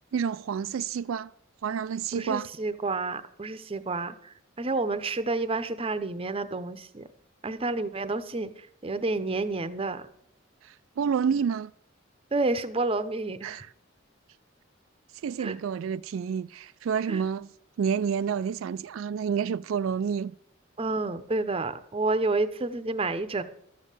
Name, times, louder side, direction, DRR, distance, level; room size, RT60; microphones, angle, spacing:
voice 1, 0.1-1.3 1.6-2.5 10.6-11.7 13.4-13.7 15.2-17.5 17.8-20.3, right 7 dB, 85° right, 0.3 m, -29 dB
voice 2, 2.2-7.1 7.4-10.1 12.3-13.6 15.4-15.5 17.1-17.2 20.8-23.4, right 3 dB, 30° right, 0.7 m, -30 dB
13.0 x 7.4 x 6.6 m
head